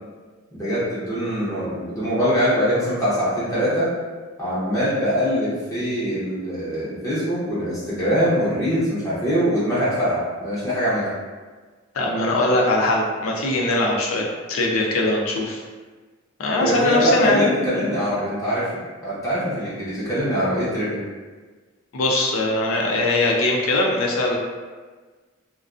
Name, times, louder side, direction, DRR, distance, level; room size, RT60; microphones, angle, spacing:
voice 1, 0.5-3.9 4.4-11.1 16.6-21.0, equal, 15° left, -11 dB, 0.6 m, -23 dB
voice 2, 11.9-15.6 16.4-17.4 21.9-24.4, left 2 dB, 90° left, -1 dB, 0.5 m, -21 dB
2.4 x 2.2 x 2.4 m, 1.4 s
head